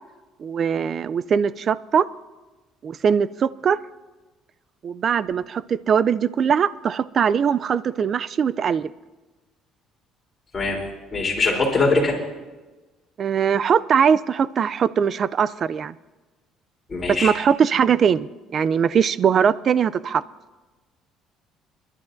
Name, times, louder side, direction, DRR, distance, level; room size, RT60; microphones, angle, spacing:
voice 1, 0.4-2.1 2.8-3.8 4.8-8.9 13.2-15.9 17.2-18.3 18.5-20.2, right 7 dB, 40° right, 18 dB, 0.4 m, -21 dB
voice 2, 11.1-12.2 16.9-17.3, left 3 dB, 25° left, -2 dB, 3.4 m, -21 dB
28.0 x 11.5 x 2.6 m, 1.2 s
cardioid pair, 130°, 0 cm